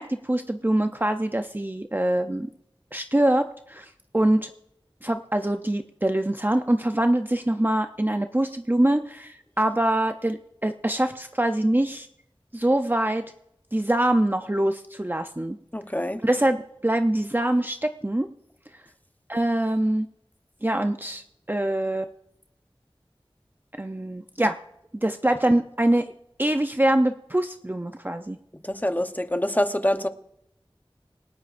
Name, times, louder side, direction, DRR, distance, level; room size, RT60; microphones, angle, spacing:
voice 1, 0.0-2.5 2.9-4.5 5.0-12.1 12.5-13.2 13.7-15.6 16.2-16.6 16.8-18.3 19.3-20.1 20.6-22.1 23.8-24.6 24.9-26.1 26.4-28.4, right 1 dB, 20° right, 6 dB, 0.6 m, -24 dB
voice 2, 15.7-16.2 28.6-30.1, left 1 dB, 20° left, 8 dB, 0.9 m, -25 dB
27.5 x 11.5 x 2.5 m, 0.79 s
wide cardioid pair, 40°, 10 cm